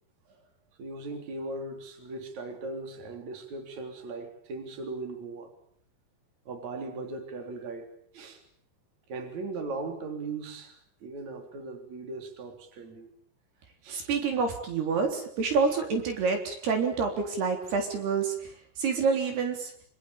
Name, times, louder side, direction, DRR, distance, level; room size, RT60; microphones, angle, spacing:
voice 1, 0.8-5.5 6.5-7.9 8.1-8.4 9.1-13.1 13.8-14.1, right 3 dB, 45° right, 6 dB, 4.7 m, -38 dB
voice 2, 13.9-18.5 18.8-19.7, right 5 dB, 65° right, 5 dB, 5.6 m, -27 dB
26.5 x 26.5 x 7.1 m, 0.62 s
omnidirectional pair, 5.0 m